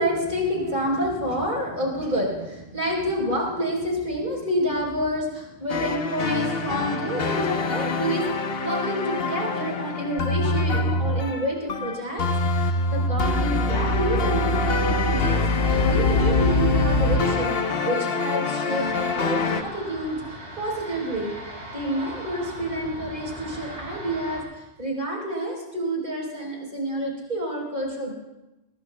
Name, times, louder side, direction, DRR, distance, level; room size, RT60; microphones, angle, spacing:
voice 1, 0.0-15.4 15.8-17.5 17.8-21.3 21.7-28.1, equal, 50° right, -2 dB, 4.3 m, -28 dB
sound 1, 5.7-19.6, left 2 dB, 65° left, 1.2 m, -24 dB
sound 2, 18.8-24.4, right 1 dB, 85° right, 6.4 m, -39 dB
23.5 x 20.5 x 2.3 m, 1.0 s
omnidirectional pair, 1.1 m